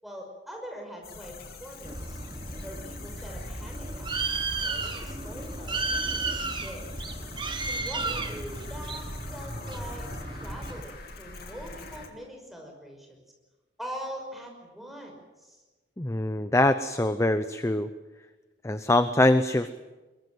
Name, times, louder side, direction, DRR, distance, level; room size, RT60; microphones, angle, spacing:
voice 1, 0.0-2.2 2.6-6.3 6.6-6.9 7.7-10.1 10.4-13.2 13.8-15.6, equal, ahead, 1 dB, 5.6 m, -43 dB
sound 1, 1.0-12.1, left 3 dB, 55° left, 3.0 m, -44 dB
Bird, 1.8-10.8, right 3 dB, 25° right, 1.8 m, -33 dB
voice 2, 16.0-17.9 18.6-19.7, left 1 dB, 15° left, 10 dB, 0.7 m, -23 dB
22.5 x 22.0 x 7.8 m, 1.2 s
head